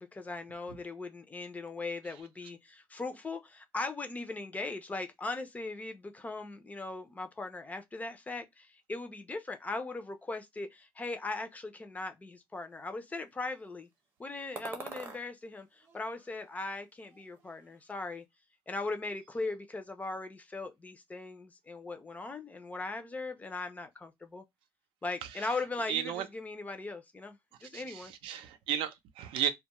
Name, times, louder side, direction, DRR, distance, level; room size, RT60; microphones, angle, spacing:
voice 1, 0.0-13.9 14.2-18.2 18.7-24.4 25.0-28.1, left 3 dB, 15° left, 0.4 m, -39 dB
sound 1, 14.5-15.2 15.8-16.8 17.0-17.8, right 3 dB, 30° right, 0.6 m, -46 dB
voice 2, 25.9-26.2 27.7-29.5, right 9 dB, 90° right, 0.5 m, -34 dB
2.2 x 2.1 x 2.8 m
cardioid pair, 125°, 9 cm